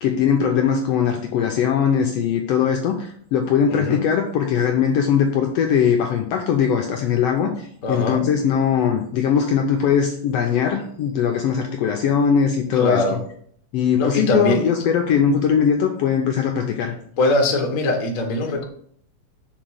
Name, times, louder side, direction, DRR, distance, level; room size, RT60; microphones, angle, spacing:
voice 1, 0.0-13.0 13.7-16.9, left 7 dB, 80° left, 3 dB, 1.5 m, -20 dB
voice 2, 3.7-4.0 7.8-8.2 12.7-13.2 14.0-14.7 17.2-18.6, left 2 dB, 65° left, 2 dB, 0.8 m, -21 dB
6.2 x 4.0 x 6.2 m, 0.64 s
omnidirectional pair, 3.4 m